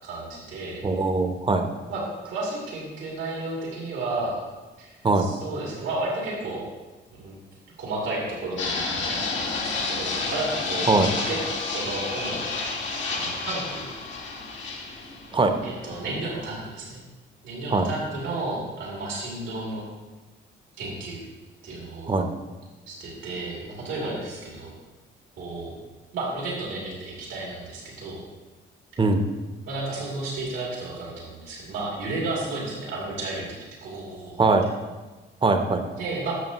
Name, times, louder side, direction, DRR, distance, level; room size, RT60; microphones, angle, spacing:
voice 1, 0.0-0.8 1.9-4.4 4.8-6.6 7.1-7.3 7.8-11.4 11.7-12.5 13.0-13.9 15.6-17.0 17.4-19.8 20.8-21.2 21.6-22.2 22.9-24.7 25.4-25.7 26.1-28.2 29.6-33.5 33.8-34.5 36.0-36.3, right 2 dB, 85° right, -4 dB, 2.9 m, -32 dB
voice 2, 0.8-1.6 5.0-5.3 10.9-11.1 15.3-15.5 17.7-17.9 22.1-22.3 29.0-29.2 34.4-34.7 35.4-35.8, right 3 dB, 25° right, 6 dB, 0.9 m, -21 dB
Fixed-wing aircraft airplane, 8.6-16.5, left 3 dB, 70° left, 1.7 m, -30 dB
11.0 x 6.9 x 3.1 m, 1.2 s
cardioid pair, 90°, 20 cm